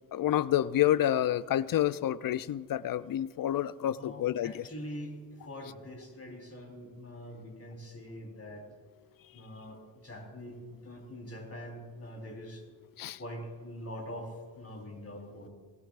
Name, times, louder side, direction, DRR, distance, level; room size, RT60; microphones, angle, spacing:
voice 1, 0.1-4.7 13.0-13.2, left 12 dB, 50° left, 18 dB, 0.6 m, -29 dB
voice 2, 4.0-8.7 9.3-12.6 13.2-15.5, equal, 35° left, 1 dB, 4.1 m, -44 dB
17.5 x 14.0 x 2.5 m, 1.5 s
supercardioid pair, 45°, 44 cm